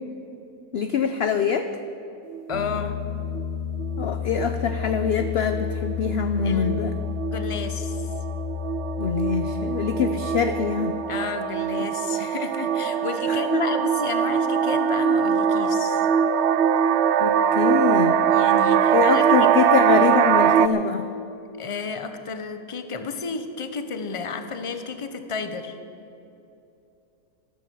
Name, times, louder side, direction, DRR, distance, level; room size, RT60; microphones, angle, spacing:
voice 1, 0.7-1.7 4.0-7.0 9.0-11.0 13.3-13.6 17.2-18.2 18.9-21.1, left 6 dB, 55° left, 8 dB, 0.7 m, -24 dB
sound 1, 2.3-2.8 3.3-3.5 3.8-4.1 4.4-20.7, right 8 dB, 70° right, 0.6 m, -22 dB
Piano, 2.5-10.6, left 9 dB, 90° left, 1.7 m, -31 dB
voice 2, 2.5-3.0 6.4-6.9 7.3-8.1 11.1-16.1 18.3-19.7 21.6-25.7, left 5 dB, 25° left, 8 dB, 0.8 m, -32 dB
13.5 x 13.0 x 7.1 m, 2.8 s
omnidirectional pair, 1.7 m